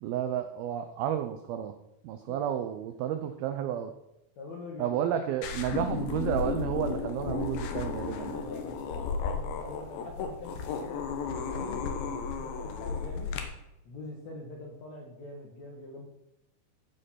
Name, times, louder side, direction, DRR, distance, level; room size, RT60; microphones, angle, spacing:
voice 1, 0.0-1.7 2.0-3.9 4.8-8.4, right 10 dB, 85° right, 8 dB, 2.1 m, -31 dB
voice 2, 4.4-5.4 8.2-13.4 13.9-16.0, left 2 dB, 60° left, -1 dB, 1.9 m, -44 dB
sound 1, 5.4-13.4, left 5 dB, 85° left, 3.5 m, -34 dB
15.0 x 5.1 x 5.8 m, 0.89 s
omnidirectional pair, 5.1 m